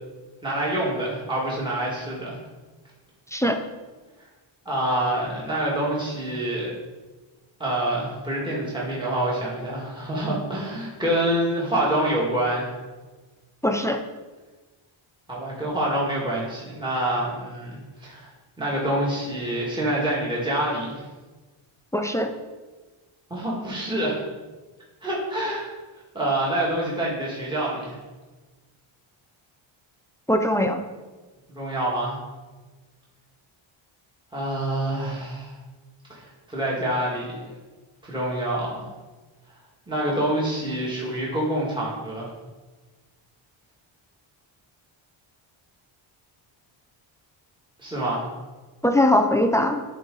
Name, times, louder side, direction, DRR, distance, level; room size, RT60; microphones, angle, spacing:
voice 1, 0.4-2.4 4.7-6.7 7.6-12.7 15.3-18.3 18.6-21.0 23.3-24.2 25.0-25.7 26.1-28.0 31.5-32.2 34.3-35.5 36.1-37.6 38.0-38.9 39.9-42.3 47.8-48.3, right 1 dB, 10° right, -6 dB, 2.0 m, -26 dB
voice 2, 13.6-14.0 21.9-22.3 30.3-30.8 48.8-49.8, left 1 dB, 5° left, 5 dB, 0.3 m, -21 dB
12.0 x 4.0 x 3.8 m, 1.3 s
cardioid pair, 135°, 50 cm